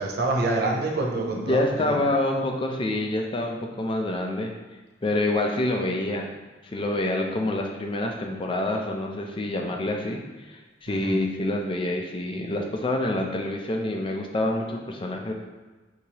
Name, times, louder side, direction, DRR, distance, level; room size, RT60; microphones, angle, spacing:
voice 1, 0.0-2.0 10.9-11.2, right 2 dB, 60° right, 0 dB, 0.7 m, -27 dB
voice 2, 1.2-4.5 5.0-6.3 6.7-15.3, left 1 dB, 30° left, 2 dB, 0.5 m, -27 dB
6.3 x 2.8 x 2.9 m, 1.2 s
head